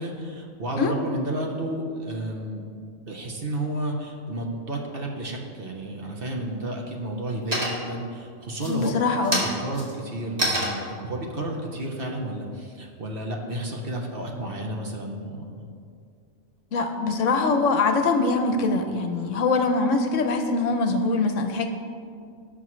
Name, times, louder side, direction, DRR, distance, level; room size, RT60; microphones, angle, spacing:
voice 1, 0.0-2.7 3.1-9.0 9.6-15.6, right 1 dB, 45° right, 1 dB, 1.2 m, -32 dB
sound 1, 5.8-6.4 6.8-7.3 7.5-8.1 8.5-12.9, equal, 30° right, 2.1 m, -30 dB
voice 2, 8.7-9.5 16.7-21.7, left 3 dB, 70° left, 6 dB, 1.1 m, -23 dB
18.0 x 6.0 x 3.2 m, 2.3 s
omnidirectional pair, 1.4 m